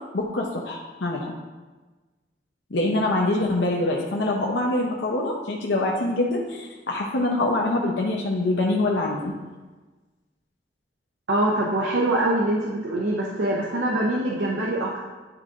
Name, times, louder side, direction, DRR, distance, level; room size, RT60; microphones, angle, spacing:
voice 1, 0.1-1.3 2.7-9.3, left 2 dB, 90° left, -1 dB, 0.7 m, -24 dB
voice 2, 11.3-15.0, right 1 dB, 90° right, -3 dB, 0.7 m, -24 dB
10.0 x 3.9 x 2.5 m, 1.2 s
head